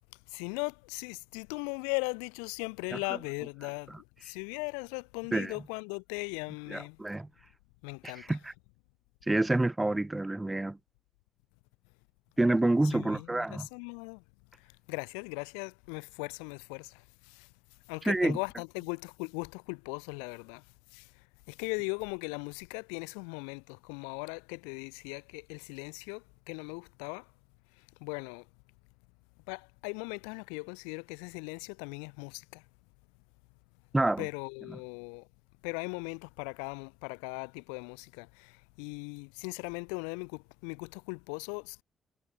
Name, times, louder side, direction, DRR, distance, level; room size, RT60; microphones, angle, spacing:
voice 1, 0.3-7.0 7.8-8.4 12.8-14.2 14.6-17.5 17.9-20.6 20.9-27.3 27.8-28.5 29.5-32.6 34.2-35.3 35.6-41.8, left 40 dB or more, 90° left, 0.6 m, -39 dB
voice 2, 6.7-7.3 8.0-8.5 9.3-10.8 12.4-13.7 18.0-18.4 33.9-34.3, right 2 dB, 20° right, 1.1 m, -28 dB
hypercardioid pair, 50°, 0 cm